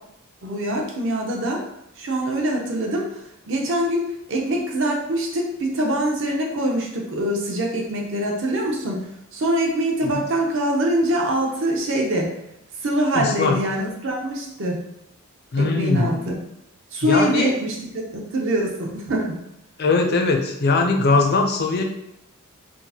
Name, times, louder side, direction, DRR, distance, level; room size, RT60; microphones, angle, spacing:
voice 1, 0.4-1.6 2.0-3.1 3.5-9.1 9.3-12.3 12.8-14.8 15.6-16.4 16.9-19.4, right 1 dB, 60° right, -1 dB, 0.7 m, -24 dB
voice 2, 13.1-13.6 15.5-16.3 17.0-17.5 19.8-21.8, left 3 dB, 45° left, 3 dB, 0.4 m, -20 dB
4.4 x 2.1 x 2.8 m, 0.81 s
head